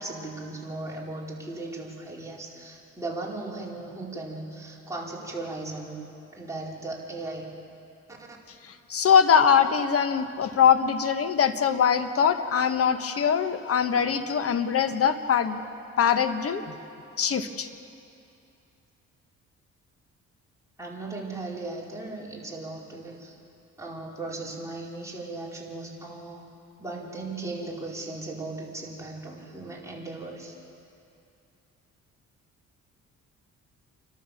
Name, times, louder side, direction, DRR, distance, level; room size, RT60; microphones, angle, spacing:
voice 1, 0.0-7.5 8.1-8.4 20.8-23.4 23.8-26.5 26.8-30.6, right 2 dB, 10° right, -4 dB, 4.7 m, -37 dB
voice 2, 8.9-15.6 16.0-16.8 17.2-17.7, left 7 dB, 50° left, 9 dB, 1.3 m, -22 dB
28.5 x 13.0 x 7.1 m, 2.6 s
cardioid pair, 90°, 30 cm